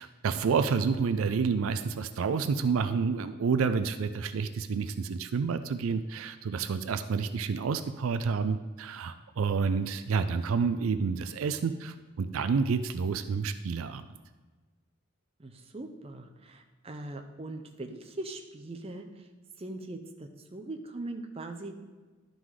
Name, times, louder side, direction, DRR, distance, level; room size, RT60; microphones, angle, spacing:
voice 1, 0.0-14.0, right 5 dB, 75° right, 11 dB, 0.4 m, -29 dB
voice 2, 15.4-19.0 19.6-20.0 20.5-21.7, right 2 dB, 30° right, 5 dB, 0.6 m, -40 dB
11.0 x 3.9 x 4.7 m, 1.3 s
head